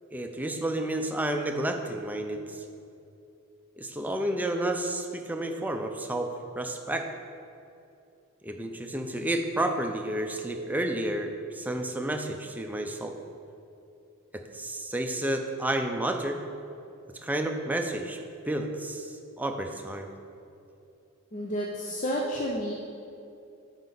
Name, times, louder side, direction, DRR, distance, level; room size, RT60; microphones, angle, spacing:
voice 1, 0.1-2.6 3.8-6.3 6.6-7.1 8.4-13.1 14.3-16.4 17.2-18.2 18.5-20.1, right 1 dB, 10° right, 4 dB, 0.5 m, -31 dB
voice 2, 21.3-22.7, equal, 35° left, -2 dB, 0.6 m, -30 dB
9.5 x 5.3 x 3.9 m, 2.6 s
head